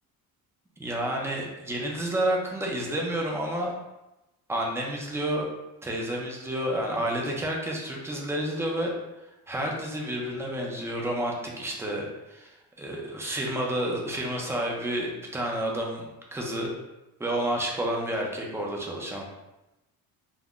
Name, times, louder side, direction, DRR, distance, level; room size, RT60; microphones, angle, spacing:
voice 1, 0.8-3.7 4.5-5.5 5.8-16.1 16.3-16.7 17.2-19.3, right 1 dB, 5° right, -1 dB, 0.4 m, -30 dB
2.4 x 2.1 x 3.6 m, 0.98 s
cardioid pair, 130°, 36 cm